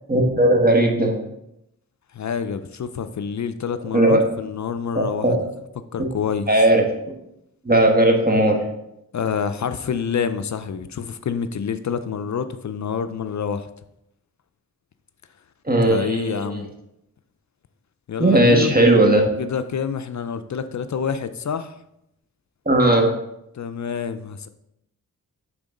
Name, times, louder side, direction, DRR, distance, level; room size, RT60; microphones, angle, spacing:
voice 1, 0.1-1.2 3.9-4.2 4.9-5.4 6.0-6.1 6.5-6.8 7.6-8.6 15.6-16.6 18.2-19.2 22.6-23.1, right 1 dB, 25° right, 1 dB, 1.3 m, -17 dB
voice 2, 2.1-5.4 5.9-6.5 9.1-13.7 15.8-16.7 18.1-18.7 19.4-21.7 23.5-24.5, left 7 dB, 50° left, 11 dB, 0.4 m, -27 dB
6.0 x 3.7 x 5.1 m, 0.82 s
cardioid pair, 60°, 36 cm